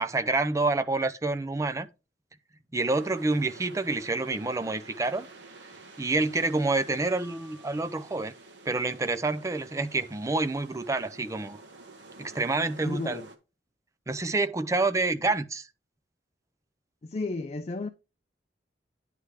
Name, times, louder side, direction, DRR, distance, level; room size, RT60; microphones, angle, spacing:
voice 1, 0.0-1.9 2.7-5.3 6.0-8.3 8.7-11.6 12.2-13.2 14.1-15.7, right 3 dB, 20° right, 0.4 m, -28 dB
sound 1, 2.9-13.4, right 3 dB, 80° right, 1.2 m, -50 dB
sound 2, 7.2-8.5, equal, 20° left, 1.5 m, -56 dB
voice 2, 12.8-13.3 17.0-17.9, left 3 dB, 35° left, 0.4 m, -33 dB
9.8 x 3.3 x 4.7 m
head